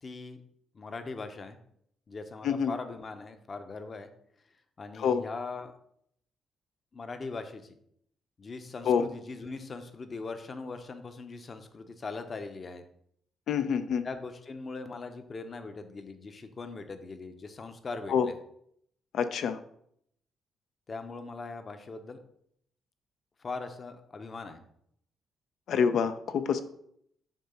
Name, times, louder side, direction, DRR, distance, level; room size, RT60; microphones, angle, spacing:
voice 1, 0.0-0.4 0.7-1.6 2.1-4.1 4.8-5.7 6.9-7.7 8.4-12.8 14.0-18.3 20.9-22.2 23.4-24.6, left 3 dB, 40° left, 8 dB, 0.8 m, -40 dB
voice 2, 13.5-14.0 18.1-18.3 19.1-19.6 25.7-26.6, left 7 dB, 70° left, 10 dB, 0.5 m, -26 dB
7.3 x 2.9 x 5.6 m, 0.70 s
cardioid pair, 90°, 0 cm